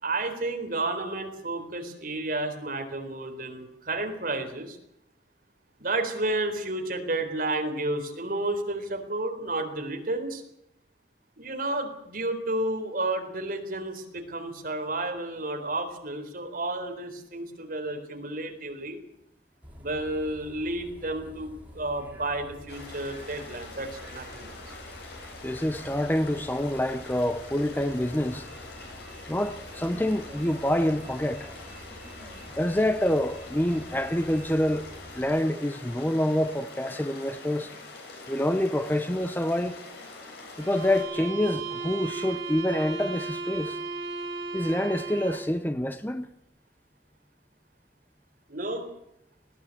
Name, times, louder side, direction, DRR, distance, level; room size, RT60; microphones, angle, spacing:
voice 1, 0.0-4.8 5.8-10.4 11.4-19.0 19.8-21.5 21.7-24.7 48.5-48.9, right 2 dB, 50° right, 4.2 m, -31 dB
Bus, 19.6-35.2, equal, 10° right, 5.5 m, -48 dB
sound 1, 22.7-41.0, left 3 dB, 60° left, 7.7 m, -44 dB
voice 2, 25.4-28.5 29.3-31.5 32.6-34.9 35.2-37.7 38.3-39.8 40.6-43.8 44.5-46.3, left 1 dB, 10° left, 0.8 m, -27 dB
sound 2, 40.6-45.6, right 3 dB, 70° right, 3.9 m, -35 dB
20.5 x 16.5 x 8.6 m
head